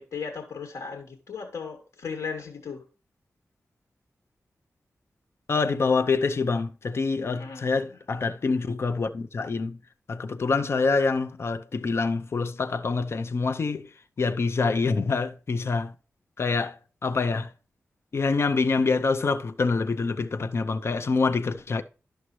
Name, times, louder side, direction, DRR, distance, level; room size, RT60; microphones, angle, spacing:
voice 1, 0.0-2.8 7.3-8.0, left 5 dB, 85° left, 1.3 m, -37 dB
voice 2, 5.5-9.8 10.1-13.9 14.2-15.9 16.4-16.8 17.0-17.5 18.1-21.8, left 4 dB, 55° left, 0.6 m, -26 dB
11.5 x 6.4 x 3.1 m
wide cardioid pair, 95°, 5 cm